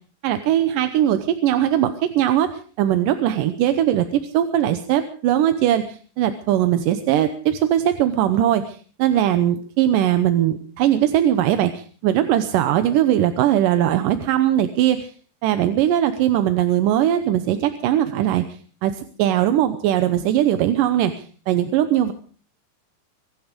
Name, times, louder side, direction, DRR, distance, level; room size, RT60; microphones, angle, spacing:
voice 1, 0.2-2.5 2.8-15.1 15.4-18.4 18.8-22.1, right 11 dB, 70° right, 9 dB, 2.2 m, -20 dB
23.5 x 11.5 x 5.1 m, 0.42 s
omnidirectional pair, 4.5 m